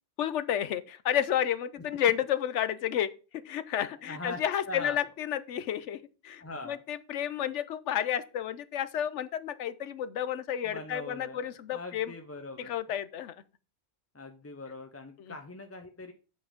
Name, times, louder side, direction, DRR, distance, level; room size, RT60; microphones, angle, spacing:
voice 1, 0.2-3.1 3.4-12.1 12.6-13.4 15.3-15.4, left 10 dB, 80° left, 1.0 m, -31 dB
voice 2, 4.0-5.0 6.4-6.8 10.6-12.7 14.1-16.1, left 2 dB, 15° left, 0.5 m, -42 dB
7.5 x 5.6 x 5.1 m
omnidirectional pair, 1.2 m